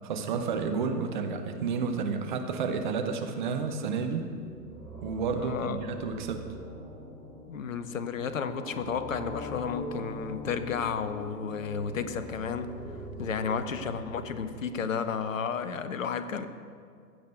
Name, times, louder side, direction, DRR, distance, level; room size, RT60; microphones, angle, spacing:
voice 1, 0.0-4.3 5.0-6.4, right 5 dB, 30° right, 6 dB, 0.9 m, -31 dB
sound 1, 4.2-15.3, equal, 80° right, 3.9 m, -43 dB
voice 2, 5.3-5.8 7.5-12.7 13.2-16.5, left 6 dB, 55° left, 11 dB, 0.9 m, -32 dB
15.5 x 6.5 x 8.0 m, 2.2 s
figure-of-eight pair, 120°, 49 cm